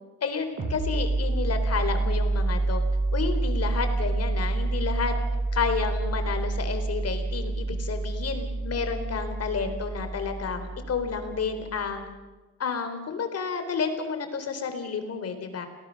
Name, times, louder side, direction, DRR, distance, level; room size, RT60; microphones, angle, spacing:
voice 1, 0.2-2.8 3.1-5.1 5.5-12.0 12.6-15.7, left 5 dB, 55° left, 7 dB, 4.0 m, -30 dB
sound 1, 0.6-11.9, right 2 dB, 45° right, 6.5 m, -28 dB
28.5 x 18.5 x 6.6 m, 1.2 s
cardioid pair, 90°, 30 cm